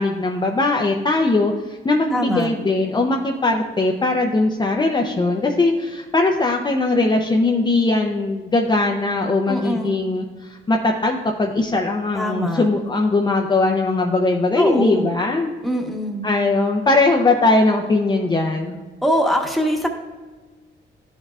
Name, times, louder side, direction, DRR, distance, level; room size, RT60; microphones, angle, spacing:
voice 1, 0.0-15.5 16.2-18.8, left 2 dB, 20° left, 0 dB, 0.6 m, -20 dB
voice 2, 2.1-2.5 9.5-10.0 12.1-12.7 14.5-15.1 15.6-16.3 19.0-19.9, equal, ahead, 1 dB, 1.2 m, -22 dB
12.0 x 5.4 x 2.4 m, 1.3 s
cardioid pair, 90°, 20 cm